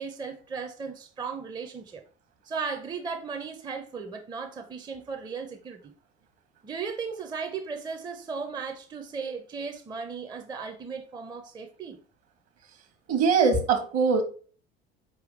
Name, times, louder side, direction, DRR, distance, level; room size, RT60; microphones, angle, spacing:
voice 1, 0.0-2.0 2.5-5.9 6.6-12.0, right 5 dB, 15° right, 0.5 m, -36 dB
voice 2, 13.1-14.2, right 5 dB, 50° right, 1.1 m, -22 dB
4.6 x 3.4 x 3.1 m
figure-of-eight pair, 60°, 31 cm